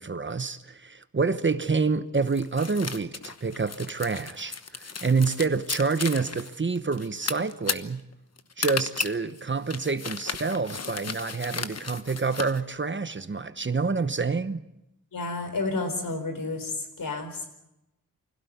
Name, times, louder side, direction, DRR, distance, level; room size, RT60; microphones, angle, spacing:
voice 1, 0.0-8.0 8.6-14.7, right 4 dB, 35° right, 1.0 m, -27 dB
sound 1, 2.2-12.6, left 5 dB, 50° left, 1.2 m, -35 dB
voice 2, 15.1-17.5, left 3 dB, 80° left, 4.7 m, -31 dB
25.0 x 17.0 x 9.3 m
wide cardioid pair, 120°, 33 cm